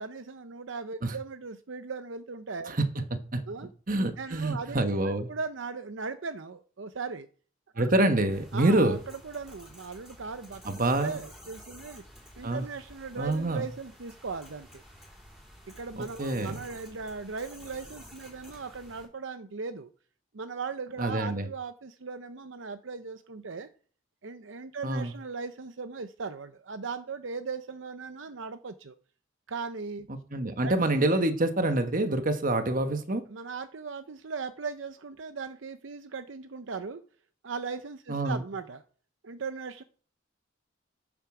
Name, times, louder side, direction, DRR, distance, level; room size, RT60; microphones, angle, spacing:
voice 1, 0.0-2.8 3.5-3.7 4.2-4.8 5.0-7.3 7.7-7.8 8.5-12.0 12.4-14.8 15.7-19.9 20.3-23.7 24.2-29.0 29.5-30.1 30.6-30.7 33.3-37.0 37.4-38.8 39.2-39.8, right 4 dB, 70° right, 0.7 m, -38 dB
voice 2, 3.9-5.3 7.8-9.0 10.6-11.2 12.4-12.6 13.2-13.6 16.0-16.6 21.0-21.5 24.8-25.1 30.1-33.2 38.1-38.4, right 2 dB, 45° right, 1.2 m, -26 dB
sound 1, 8.3-19.0, equal, 5° right, 4.1 m, -51 dB
12.5 x 7.2 x 4.9 m
head